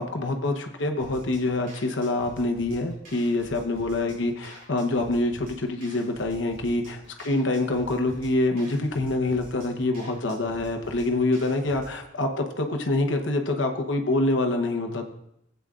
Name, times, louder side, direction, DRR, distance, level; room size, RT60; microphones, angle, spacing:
voice 1, 0.0-7.0 7.2-15.0, left 2 dB, 85° left, 3 dB, 1.0 m, -26 dB
sound 1, 1.0-12.0, right 1 dB, 50° right, 3.0 m, -48 dB
16.0 x 8.1 x 2.5 m, 0.79 s
head